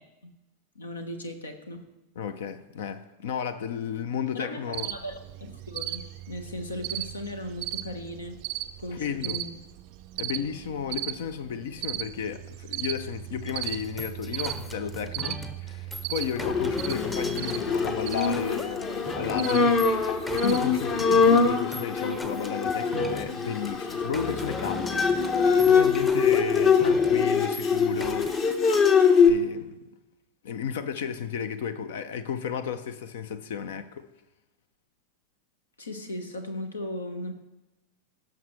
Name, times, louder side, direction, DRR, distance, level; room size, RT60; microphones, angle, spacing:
voice 1, 0.7-1.9 4.3-8.4 8.8-9.6 10.3-10.4 35.8-37.3, left 1 dB, 75° left, 1.2 m, -37 dB
voice 2, 2.2-4.9 8.9-9.4 10.2-19.8 20.3-25.0 25.6-28.3 29.3-29.8 30.4-34.1, left 7 dB, 55° left, 0.6 m, -33 dB
Cricket, 4.7-21.5, right 16 dB, 45° right, 0.4 m, -38 dB
sound 1, 13.5-28.9, left 2 dB, 10° left, 0.8 m, -40 dB
Bowed string instrument, 16.3-29.3, left 5 dB, 30° left, 1.0 m, -23 dB
16.5 x 6.5 x 3.2 m
figure-of-eight pair, 90°, 0 cm